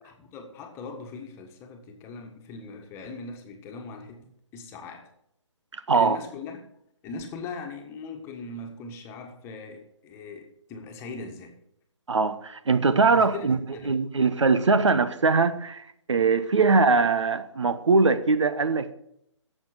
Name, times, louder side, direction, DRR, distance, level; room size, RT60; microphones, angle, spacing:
voice 1, 0.0-4.2 4.5-5.1 5.9-6.6 7.0-11.5 13.1-14.0, left 3 dB, 15° left, 1.6 m, -40 dB
voice 2, 5.9-6.2 12.1-18.9, right 4 dB, 70° right, 1.1 m, -22 dB
11.5 x 7.7 x 7.7 m
figure-of-eight pair, 145°, 16 cm